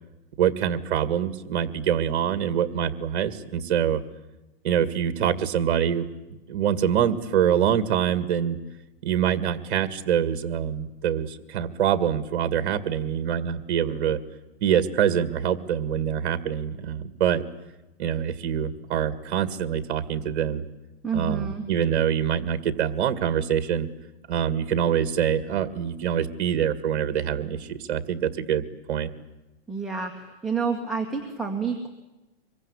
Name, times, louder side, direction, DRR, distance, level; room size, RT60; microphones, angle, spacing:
voice 1, 0.4-4.0 4.6-6.1 6.5-8.6 9.0-14.2 14.6-17.4 18.0-20.6 21.1-23.9 24.3-29.1, right 9 dB, 50° right, 13 dB, 2.0 m, -25 dB
voice 2, 21.0-21.7 29.7-31.9, right 5 dB, ahead, -1 dB, 1.8 m, -29 dB
25.5 x 23.0 x 9.9 m, 1.0 s
hypercardioid pair, 160°, 32 cm